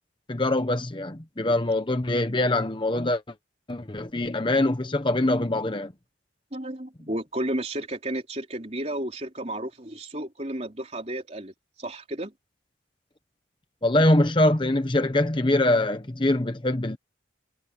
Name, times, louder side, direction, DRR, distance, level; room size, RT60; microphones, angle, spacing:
voice 1, 0.3-3.2 3.7-5.9 13.8-17.0, left 1 dB, 25° left, 1.0 m, -23 dB
voice 2, 6.5-11.5 11.8-12.3, right 1 dB, 35° right, 3.7 m, -32 dB
head